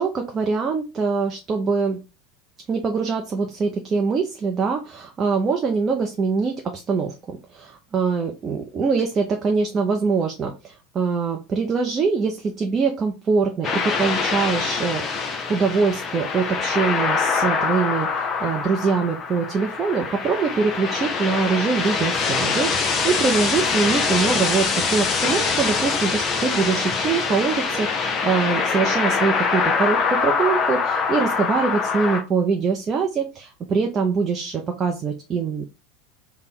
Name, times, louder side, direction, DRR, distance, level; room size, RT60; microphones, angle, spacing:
voice 1, 0.0-2.0 2.7-15.0 15.5-35.6, right 5 dB, 30° right, 2 dB, 0.5 m, -23 dB
sound 1, 13.6-32.2, left 5 dB, 30° left, 0.7 m, -24 dB
3.4 x 2.2 x 4.1 m, 0.28 s
figure-of-eight pair, 75°, 0 cm